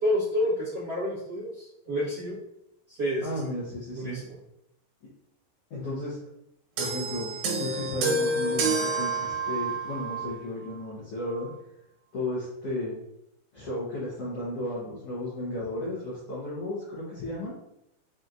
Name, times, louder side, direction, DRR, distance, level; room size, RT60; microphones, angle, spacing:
voice 1, 0.0-2.4 3.0-3.5 3.9-4.2, equal, 55° right, -12 dB, 1.1 m, -29 dB
voice 2, 3.2-4.2 5.7-6.2 6.8-11.5 12.1-13.0 13.5-17.5, left 1 dB, 75° left, -8 dB, 1.4 m, -34 dB
sound 1, 6.8-10.4 11.3-11.4, right 3 dB, 80° right, 2.7 m, -29 dB
6.1 x 2.7 x 2.5 m, 0.81 s
omnidirectional pair, 4.3 m